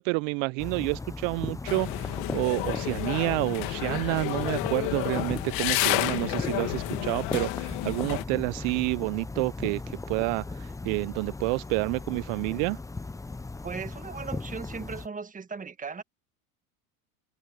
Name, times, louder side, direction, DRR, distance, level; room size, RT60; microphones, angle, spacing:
voice 1, 0.0-12.8, right 30 dB, 60° right, 0.7 m, -29 dB
sound 1, 0.6-15.1, left 3 dB, 10° left, 0.8 m, -37 dB
sound 2, 1.7-8.2, left 25 dB, 60° left, 2.3 m, -31 dB
voice 2, 13.6-16.0, right 5 dB, 20° right, 1.7 m, -37 dB
hypercardioid pair, 90°, 43 cm